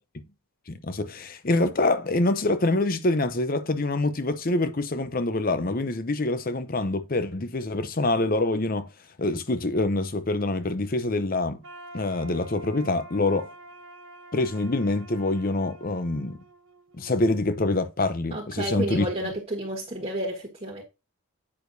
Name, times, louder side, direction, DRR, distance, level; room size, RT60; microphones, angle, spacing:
voice 1, 0.7-8.9 9.2-11.6 11.9-13.5 14.3-16.4 16.9-19.1, left 2 dB, 40° left, 0.7 m, -25 dB
sound 1, 11.6-17.5, right 1 dB, 70° right, 1.2 m, -47 dB
voice 2, 18.3-20.8, right 1 dB, 30° right, 1.5 m, -31 dB
8.6 x 6.3 x 2.7 m
head